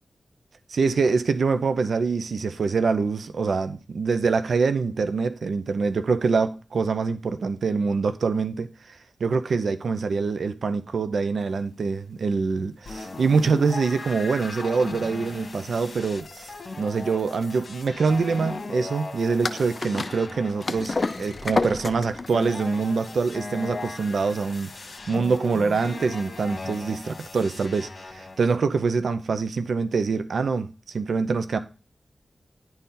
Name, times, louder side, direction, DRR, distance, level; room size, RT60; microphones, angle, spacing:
voice 1, 0.7-9.0 9.2-24.7 25.1-31.6, right 4 dB, 85° right, 0.6 m, -25 dB
sound 1, 12.9-28.6, left 3 dB, 65° left, 1.7 m, -38 dB
sound 2, 19.4-24.6, left 3 dB, 45° left, 0.6 m, -30 dB
10.5 x 4.3 x 3.8 m
wide cardioid pair, 70°, 0 cm